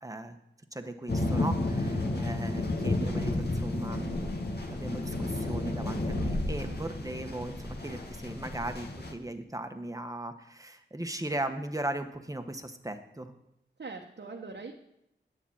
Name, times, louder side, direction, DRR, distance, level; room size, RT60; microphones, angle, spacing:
voice 1, 0.0-0.4 0.7-4.4 4.7-13.3, right 1 dB, 15° right, 7 dB, 1.3 m, -38 dB
sound 1, 1.1-9.1, left 2 dB, 55° left, 1.7 m, -32 dB
voice 2, 6.5-6.8 13.8-14.7, right 4 dB, 60° right, 0 dB, 1.2 m, -42 dB
9.9 x 7.2 x 8.8 m, 0.81 s
wide cardioid pair, 50°, 20 cm